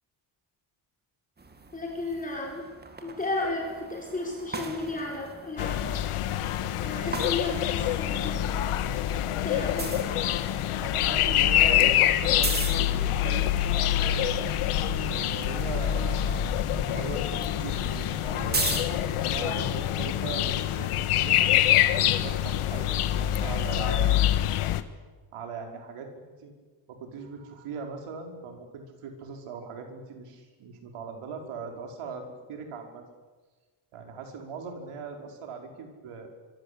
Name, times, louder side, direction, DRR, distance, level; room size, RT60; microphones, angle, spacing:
sound 1, 1.4-8.4 8.7-19.5, right 3 dB, 20° right, 2.2 m, -39 dB
voice 1, 1.7-2.6 3.0-6.0 6.8-8.6 9.4-9.8, left 2 dB, 15° left, 0 dB, 4.8 m, -33 dB
sound 2, 5.6-24.8, left 12 dB, 85° left, 1.6 m, -26 dB
voice 2, 9.8-10.5 10.8-14.5 15.0-19.0 19.3-21.5 21.9-24.3 25.3-26.1 26.4-26.5 26.9-33.0 33.9-36.3, right 5 dB, 80° right, 4 dB, 5.4 m, -39 dB
25.0 x 24.0 x 8.5 m, 1.3 s
cardioid pair, 165°, 50 cm